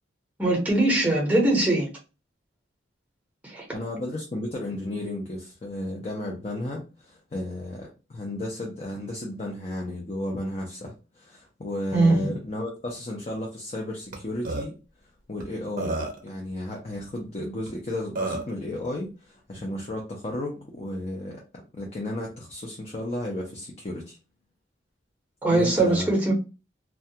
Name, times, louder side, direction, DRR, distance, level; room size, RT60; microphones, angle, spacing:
voice 1, 0.4-1.9 3.4-3.6 11.9-12.4 25.4-26.3, right 2 dB, 10° right, 0.8 m, -21 dB
voice 2, 3.7-14.7 15.3-21.4 21.7-24.2 25.5-26.1, left 1 dB, 30° left, 0.5 m, -33 dB
Burping eructation, 14.1-14.2 14.5-14.7 15.4-15.5 15.8-16.3 17.7-17.8 18.2-18.5, right 2 dB, 45° right, 0.5 m, -29 dB
2.2 x 2.2 x 2.7 m
head